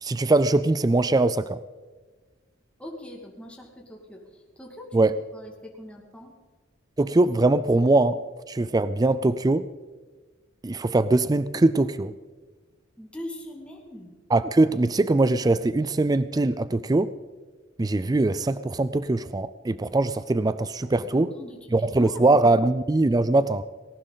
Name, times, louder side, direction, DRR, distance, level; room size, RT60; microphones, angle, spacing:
voice 1, 0.0-1.6 4.9-5.1 7.0-8.2 8.5-9.7 10.6-12.1 14.3-17.1 17.8-21.3 21.7-23.6, right 2 dB, 20° right, 15 dB, 0.4 m, -22 dB
voice 2, 2.8-6.3 13.0-14.2 20.8-22.2, left 1 dB, 5° left, -1 dB, 2.2 m, -42 dB
18.5 x 18.5 x 4.1 m, 1.4 s
head